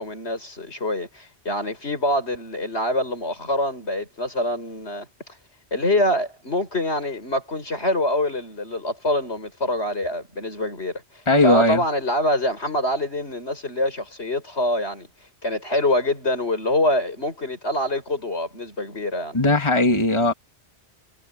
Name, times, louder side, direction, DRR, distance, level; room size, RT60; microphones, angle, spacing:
voice 1, 0.0-5.1 5.7-11.0 11.4-15.1 15.4-19.4, left 1 dB, 75° left, 6.4 m, -25 dB
voice 2, 11.3-11.8 19.3-20.3, left 2 dB, 25° left, 2.3 m, -18 dB
omnidirectional pair, 1.1 m